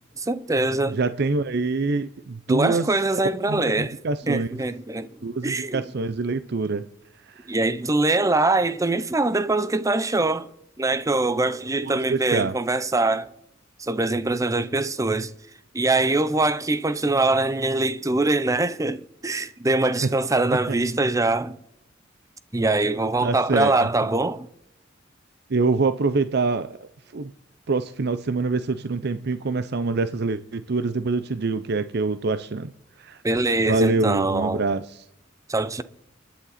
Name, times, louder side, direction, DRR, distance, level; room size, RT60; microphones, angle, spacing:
voice 1, 0.2-1.0 2.5-4.0 4.3-5.1 5.4-5.8 7.5-10.5 10.8-13.3 13.8-15.3 15.7-21.6 22.5-24.5 33.2-34.6 35.5-35.8, right 2 dB, 15° right, 0.6 m, -23 dB
voice 2, 0.9-2.9 3.5-4.6 5.2-6.9 7.2-7.5 11.8-12.5 20.7-20.8 23.2-23.9 25.5-27.3 27.7-32.7 33.0-33.2 33.6-35.0, right 3 dB, 60° right, 0.6 m, -25 dB
29.0 x 10.0 x 4.2 m
head